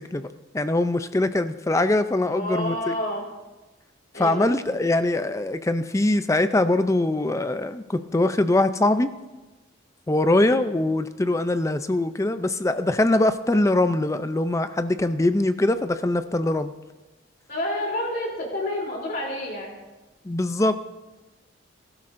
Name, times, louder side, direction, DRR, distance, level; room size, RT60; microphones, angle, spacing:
voice 1, 0.5-2.9 4.1-9.1 10.1-16.7 20.2-20.8, left 2 dB, 15° left, 11 dB, 0.4 m, -22 dB
voice 2, 2.1-3.2 4.1-4.5 10.4-10.7 17.5-19.7, left 1 dB, 45° left, -1 dB, 3.2 m, -29 dB
20.0 x 12.0 x 2.6 m, 1.2 s
head